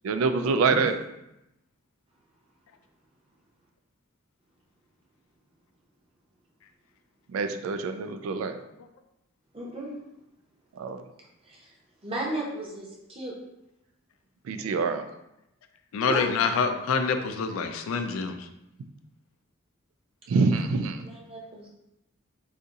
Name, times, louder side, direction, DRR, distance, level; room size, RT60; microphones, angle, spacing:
voice 1, 0.0-0.9 7.3-8.5 10.8-11.0 14.5-15.1 20.3-21.0, right 4 dB, 75° right, 10 dB, 0.3 m, -25 dB
voice 2, 9.5-9.9 11.4-11.7 12.0-13.3 16.0-16.5 21.0-21.7, right 1 dB, 25° right, -3 dB, 0.7 m, -35 dB
voice 3, 15.9-18.5, left 5 dB, 80° left, 7 dB, 0.3 m, -26 dB
2.6 x 2.4 x 3.9 m, 0.86 s
head